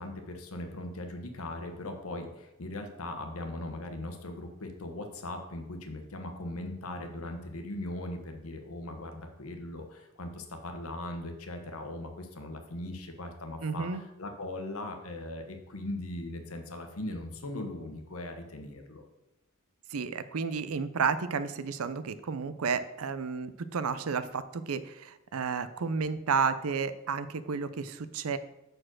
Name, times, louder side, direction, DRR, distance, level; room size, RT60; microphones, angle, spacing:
voice 1, 0.0-19.0, left 1 dB, 75° left, 5 dB, 1.1 m, -39 dB
voice 2, 13.6-14.0 19.9-28.4, right 5 dB, 80° right, 13 dB, 0.5 m, -32 dB
6.5 x 4.5 x 6.1 m, 0.93 s
head